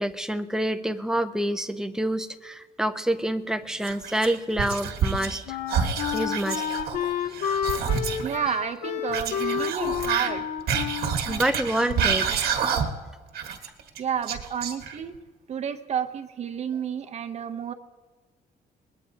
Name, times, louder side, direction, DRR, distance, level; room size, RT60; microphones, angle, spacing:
voice 1, 0.0-5.6 6.1-6.6 11.3-12.5, right 1 dB, 5° right, 9 dB, 0.5 m, -27 dB
Whispering, 3.8-5.4 5.7-8.3 9.1-13.1 13.3-15.2, right 7 dB, 75° right, 1.5 m, -28 dB
Wind instrument woodwind instrument, 5.0-12.3, left 9 dB, 85° left, 0.8 m, -30 dB
voice 2, 8.2-10.5 14.0-15.2 15.5-17.7, right 8 dB, 45° right, 9 dB, 0.8 m, -30 dB
21.5 x 20.0 x 2.8 m, 1.4 s
cardioid pair, 160°, 16 cm